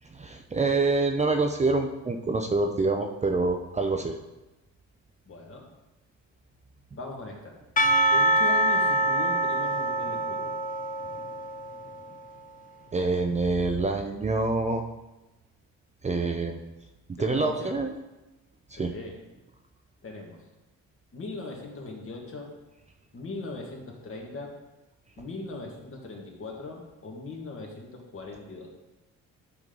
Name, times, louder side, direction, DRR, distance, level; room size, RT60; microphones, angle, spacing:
voice 1, 0.1-4.2 12.9-14.8 16.0-16.6 17.2-17.9 18.7-18.9, right 3 dB, 25° right, 4 dB, 0.6 m, -26 dB
voice 2, 5.3-5.7 6.9-7.6 8.1-10.6 17.2-17.8 18.8-19.2 20.0-20.4 21.1-22.5 23.1-24.6 25.2-28.7, left 3 dB, 45° left, 0 dB, 2.0 m, -39 dB
Percussion / Church bell, 7.8-12.2, right 1 dB, 25° left, 0.7 m, -25 dB
9.3 x 5.3 x 3.9 m, 1.0 s
cardioid pair, 90°, 30 cm